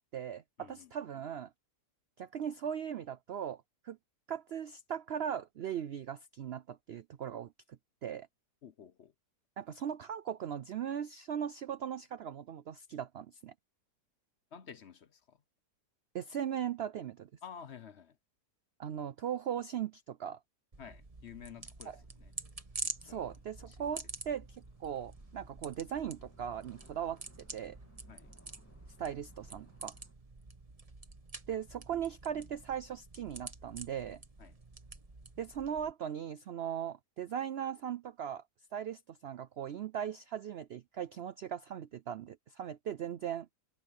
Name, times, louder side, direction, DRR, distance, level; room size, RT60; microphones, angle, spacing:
voice 1, 0.0-1.5 2.2-4.0 4.3-8.3 9.6-13.5 16.1-17.3 18.8-20.4 21.9-22.0 23.0-27.2 27.5-27.8 29.0-29.9 31.5-34.2 35.4-38.4 38.7-43.5, right 9 dB, 85° right, 0.5 m, -39 dB
voice 2, 0.6-0.9 8.6-9.1 14.5-15.4 17.4-18.2 20.8-22.3 22.8-23.2 23.7-23.9 28.1-28.3 34.4-34.5, left 8 dB, 50° left, 0.9 m, -51 dB
sound 1, 20.7-35.9, right 3 dB, 25° right, 1.4 m, -47 dB
sound 2, 22.7-30.1, left 1 dB, 10° left, 3.1 m, -66 dB
omnidirectional pair, 1.7 m